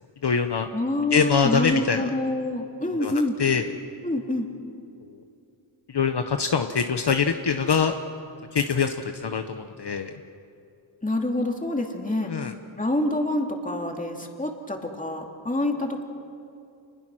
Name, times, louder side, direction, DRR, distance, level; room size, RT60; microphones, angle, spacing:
voice 1, 0.2-0.7 1.1-2.1 3.0-3.1 3.4-3.7 5.9-7.9 8.5-10.1 12.3-12.5, left 6 dB, 55° left, 7 dB, 0.9 m, -24 dB
voice 2, 0.7-3.4 4.0-4.5 11.0-12.3 12.8-16.0, left 2 dB, 15° left, 2 dB, 2.6 m, -27 dB
29.0 x 21.0 x 6.2 m, 2.6 s
wide cardioid pair, 95°, 48 cm